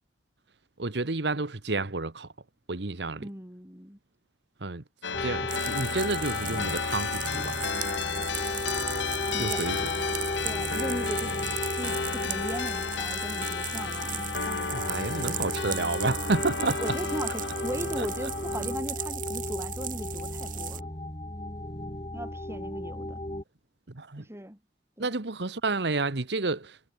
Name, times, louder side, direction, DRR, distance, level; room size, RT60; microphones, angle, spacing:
voice 1, 0.8-2.3 2.7-3.3 4.6-4.8 5.2-7.6 9.4-9.9 14.7-16.8 18.0-18.1 23.9-24.2 25.0-26.8, right 3 dB, 70° right, 1.3 m, -30 dB
voice 2, 3.2-4.0 9.2-9.6 10.4-11.4 11.7-15.7 16.6-20.9 22.1-23.2 24.2-24.6 25.0-25.2, right 1 dB, 15° right, 5.2 m, -38 dB
sound 1, 5.0-18.8, left 5 dB, 90° left, 1.8 m, -33 dB
sound 2, 5.1-23.4, left 1 dB, 30° left, 4.6 m, -35 dB
sound 3, 5.5-20.8, right 13 dB, 50° right, 3.5 m, -38 dB
head